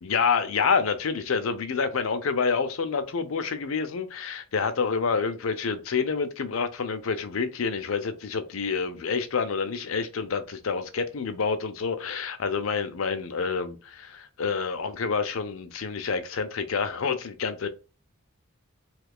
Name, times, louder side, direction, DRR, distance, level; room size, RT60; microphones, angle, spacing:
voice 1, 0.0-17.7, left 5 dB, 75° left, 0.5 m, -28 dB
3.1 x 2.4 x 3.4 m
head